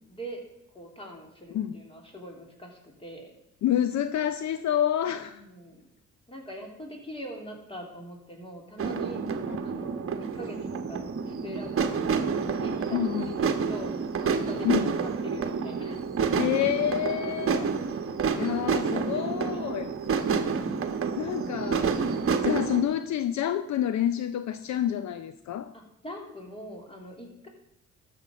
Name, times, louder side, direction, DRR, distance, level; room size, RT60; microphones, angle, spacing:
voice 1, 0.1-0.4 0.7-3.3 5.2-5.9 6.3-9.2 9.6-12.1 12.4-13.9 14.2-16.1 18.4-19.7 25.7-27.5, equal, 20° left, 0 dB, 3.1 m, -43 dB
voice 2, 3.6-5.4 9.5-9.6 12.9-13.3 14.6-14.9 16.4-17.7 18.4-20.0 21.2-22.0 22.4-25.7, left 10 dB, 65° left, 11 dB, 0.6 m, -28 dB
sound 1, 8.8-22.8, right 5 dB, 45° right, 1.1 m, -29 dB
13.0 x 7.0 x 5.2 m, 0.85 s
cardioid pair, 90°, 30 cm